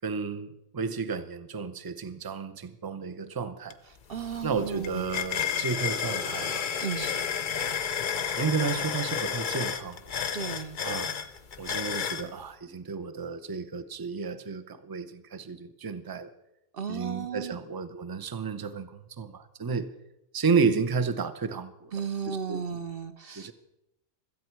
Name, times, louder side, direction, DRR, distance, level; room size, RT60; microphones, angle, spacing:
voice 1, 0.0-3.8 4.4-7.2 8.4-10.0 10.8-11.1 11.6-16.3 16.9-19.9 20.3-21.9 22.3-22.6 23.4-23.5, right 5 dB, 25° right, 0.4 m, -32 dB
sound 1, 3.7-3.8 4.1-12.3, left 7 dB, 45° left, 0.7 m, -31 dB
voice 2, 4.1-5.1 6.8-7.1 10.3-10.8 16.7-17.6 21.9-23.5, right 6 dB, 50° right, 0.9 m, -34 dB
16.5 x 13.5 x 4.6 m
omnidirectional pair, 1.5 m